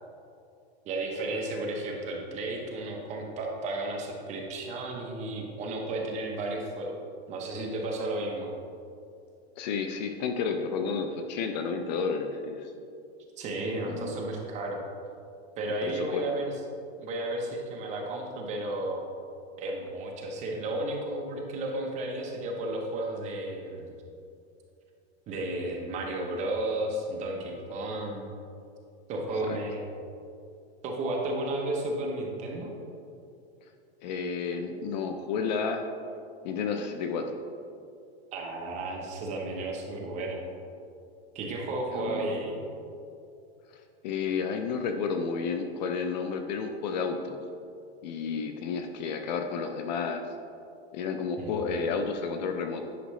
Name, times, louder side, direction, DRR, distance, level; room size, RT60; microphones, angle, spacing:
voice 1, 0.9-7.0 7.3-8.5 13.4-14.8 15.6-16.5 17.0-19.0 19.6-23.9 25.3-28.3 29.1-29.8 30.8-32.7 38.3-40.4 41.3-42.6 51.4-51.6, right 2 dB, 20° right, 0 dB, 0.7 m, -33 dB
voice 2, 9.6-12.7 13.8-14.2 15.8-16.2 29.5-29.6 34.0-35.8 36.4-37.4 41.9-42.3 43.7-47.4 48.0-50.2 50.9-52.9, left 5 dB, 40° left, 6 dB, 0.4 m, -31 dB
9.9 x 5.1 x 3.1 m, 2.5 s
supercardioid pair, 160°, 33 cm